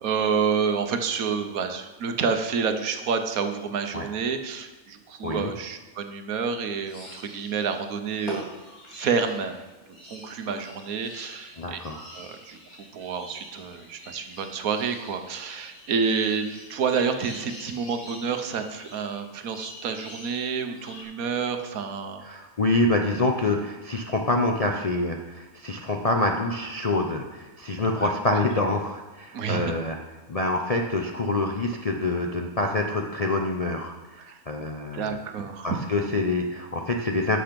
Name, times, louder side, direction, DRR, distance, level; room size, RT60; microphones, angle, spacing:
voice 1, 0.0-8.4 8.9-9.6 10.1-11.8 12.1-12.6 12.9-22.2 28.0-28.4 29.3-29.7 34.3-34.4 34.9-35.8, right 6 dB, 75° right, 7 dB, 1.3 m, -29 dB
sound 1, 6.8-21.0, left 1 dB, 75° left, 2.7 m, -45 dB
voice 2, 11.6-12.1 22.2-30.0 30.3-35.2 35.6-37.4, left 2 dB, 45° left, 1 dB, 0.5 m, -26 dB
11.5 x 6.5 x 5.2 m, 1.2 s
omnidirectional pair, 1.6 m